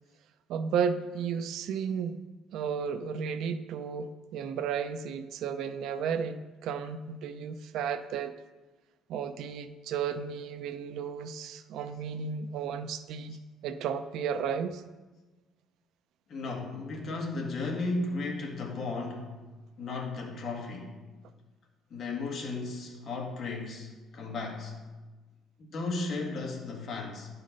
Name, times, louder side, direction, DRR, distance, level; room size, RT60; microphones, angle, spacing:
voice 1, 0.5-2.2 2.5-8.3 9.1-13.4 13.6-14.8, right 7 dB, 65° right, 0.5 m, -33 dB
voice 2, 16.3-19.4 19.8-20.9 21.9-24.8 25.7-27.3, left 3 dB, 40° left, 1.7 m, -35 dB
10.5 x 5.7 x 5.1 m
cardioid pair, 170°, 0 cm